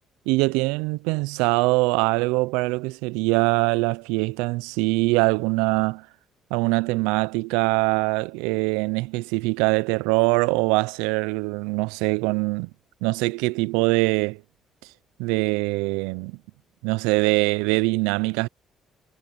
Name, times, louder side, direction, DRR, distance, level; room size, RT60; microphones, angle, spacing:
voice 1, 0.3-6.1 6.5-12.7 13.0-14.4 15.2-16.4 16.8-18.5, right 26 dB, 85° right, 0.5 m, -23 dB
hypercardioid pair, 60°, 0 cm